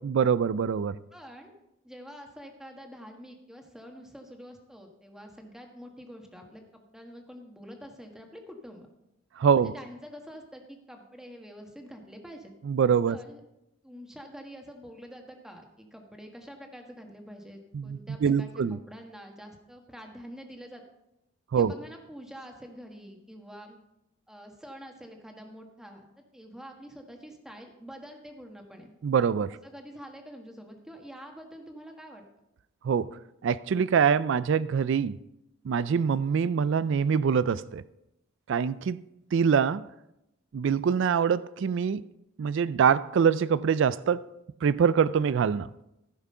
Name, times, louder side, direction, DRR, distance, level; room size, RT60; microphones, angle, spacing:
voice 1, 0.0-1.0 9.4-9.7 12.7-13.2 17.7-18.8 21.5-21.7 29.0-29.6 32.8-35.2 35.6-37.8 38.5-39.0 39.3-39.9 40.5-42.0 42.4-44.3 44.6-45.7, right 7 dB, 60° right, 0.3 m, -24 dB
voice 2, 1.1-1.5 1.8-8.9 9.5-12.5 13.1-13.4 13.8-20.8 21.5-23.8 24.3-28.9 29.6-32.2, equal, 5° right, 1.3 m, -46 dB
14.5 x 6.1 x 5.5 m
head